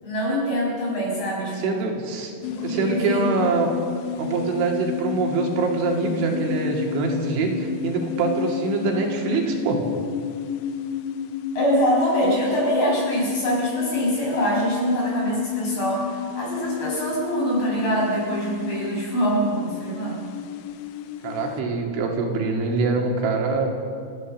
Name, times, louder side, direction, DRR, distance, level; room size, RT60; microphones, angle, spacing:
voice 1, 0.0-1.8 2.5-3.4 11.5-20.2, equal, 30° left, -3 dB, 6.7 m, -24 dB
voice 2, 1.6-3.7 4.2-9.8 12.2-12.5 21.2-23.7, right 4 dB, 85° right, 1 dB, 4.8 m, -24 dB
sound 1, 2.4-21.6, left 9 dB, 80° left, 2.7 m, -31 dB
30.0 x 13.0 x 7.3 m, 2.2 s
omnidirectional pair, 5.3 m